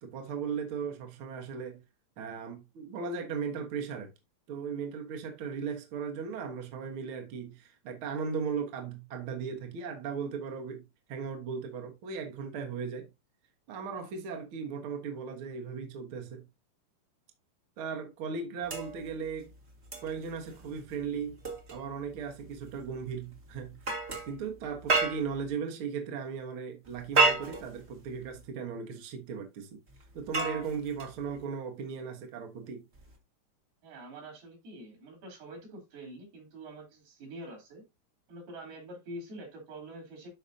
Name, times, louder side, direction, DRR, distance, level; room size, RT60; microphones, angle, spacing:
voice 1, 0.0-1.8 2.2-4.1 4.5-13.1 13.7-16.5 17.8-19.5 20.0-21.4 21.7-23.8 24.3-29.8 30.1-32.9, right 6 dB, 65° right, 1.3 m, -37 dB
sound 1, 18.6-25.5 26.8-28.4 29.9-31.4 32.9-33.1, right 3 dB, 40° right, 1.0 m, -33 dB
voice 2, 33.8-37.8 38.3-40.3, right 1 dB, 90° right, 5.4 m, -45 dB
12.0 x 5.0 x 2.7 m
omnidirectional pair, 4.2 m